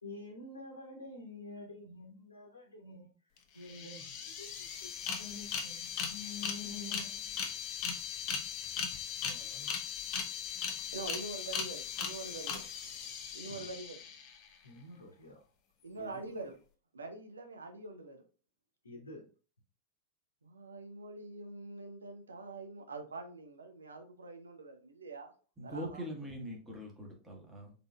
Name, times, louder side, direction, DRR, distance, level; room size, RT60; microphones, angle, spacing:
voice 1, 0.0-3.1 3.5-7.4 8.5-8.6 8.9-9.0 9.2-9.7 13.5-13.7 14.6-15.4 16.0-16.3 18.8-19.3, left 3 dB, 75° left, -2 dB, 1.0 m, -48 dB
sound 1, 3.4-3.5 3.6-14.5, left 7 dB, 40° left, 0.7 m, -39 dB
voice 2, 10.9-12.7 13.3-14.0 15.8-16.5 16.9-18.2 20.4-25.3 25.6-26.1, right 3 dB, 75° right, 5 dB, 0.7 m, -45 dB
voice 3, 25.6-27.7, equal, 15° right, 1 dB, 1.3 m, -42 dB
3.8 x 3.8 x 2.3 m, 0.36 s
figure-of-eight pair, 90°, 0 cm